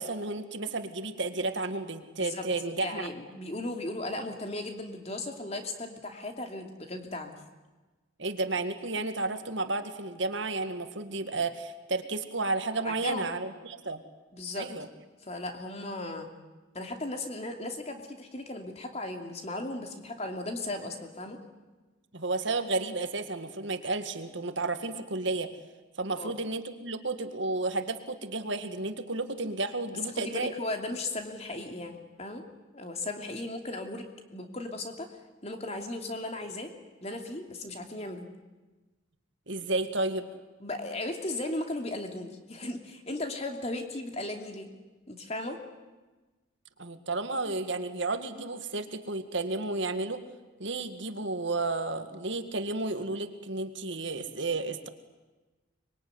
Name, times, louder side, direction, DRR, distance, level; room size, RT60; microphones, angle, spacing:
voice 1, 0.0-3.1 8.2-14.0 14.5-14.9 22.1-25.5 26.0-30.5 39.5-40.3 46.8-50.2 50.6-54.9, right 3 dB, 65° right, 8 dB, 2.0 m, -32 dB
voice 2, 2.8-7.3 12.8-13.3 14.3-14.7 15.2-16.3 16.7-21.4 26.2-26.3 30.0-32.4 32.7-36.7 37.0-38.3 40.6-44.7 45.1-45.6, left 2 dB, 30° left, 4 dB, 2.8 m, -36 dB
24.5 x 22.5 x 9.6 m, 1.2 s
head